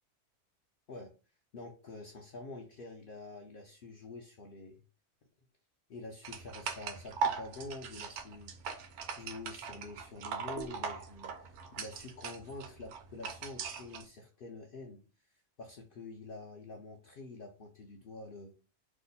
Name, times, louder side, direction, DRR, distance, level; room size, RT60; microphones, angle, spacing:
voice 1, 1.5-4.8 5.9-18.5, left 3 dB, 65° left, 2 dB, 0.5 m, -47 dB
sound 1, 6.2-14.0, right 6 dB, 70° right, 0.8 m, -40 dB
2.9 x 2.0 x 3.9 m, 0.34 s
omnidirectional pair, 1.4 m